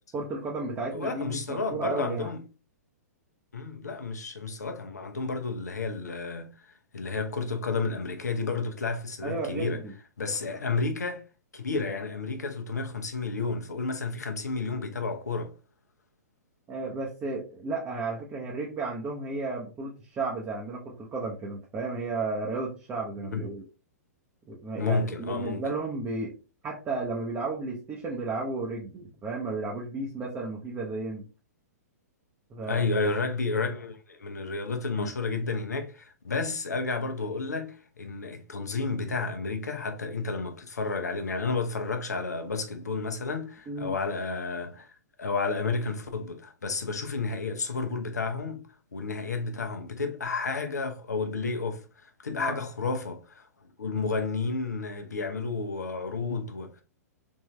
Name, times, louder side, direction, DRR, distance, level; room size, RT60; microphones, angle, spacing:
voice 1, 0.1-2.3 9.2-9.9 16.7-23.6 24.5-26.4 26.6-31.2 32.5-32.9 43.7-43.9 52.3-52.6, right 3 dB, 20° right, 0.8 m, -33 dB
voice 2, 0.9-2.4 3.5-9.8 10.2-11.3 11.5-15.5 23.2-23.4 24.8-25.7 32.7-44.9 45.2-48.6 48.9-53.5 53.8-56.8, left 4 dB, 80° left, 0.7 m, -31 dB
3.6 x 2.6 x 3.2 m
figure-of-eight pair, 115°, 9 cm